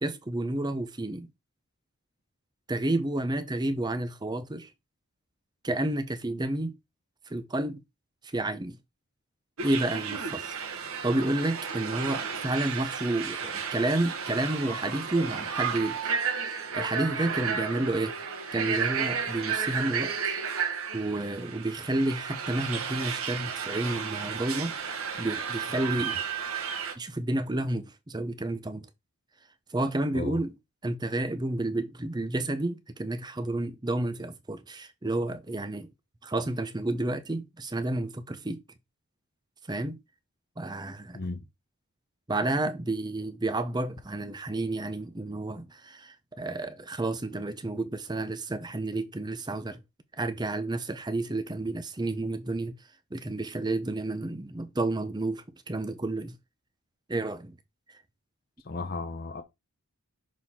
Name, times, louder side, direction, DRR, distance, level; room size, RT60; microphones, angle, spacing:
voice 1, 0.0-1.3 2.7-4.7 5.6-6.7 7.3-7.8 8.3-8.8 9.6-16.0 16.4-18.1 18.5-20.2 20.9-24.7 25.2-26.2 27.0-28.9 29.7-30.5 30.8-35.9 36.2-38.6 39.7-40.0 40.6-41.2 42.3-49.8 50.2-52.7 53.1-56.4 57.1-57.5, right 2 dB, 20° right, 0.6 m, -30 dB
sound 1, 9.6-26.9, right 6 dB, 70° right, 1.3 m, -33 dB
voice 2, 58.7-59.4, left 3 dB, 45° left, 0.7 m, -34 dB
6.4 x 4.1 x 3.7 m
head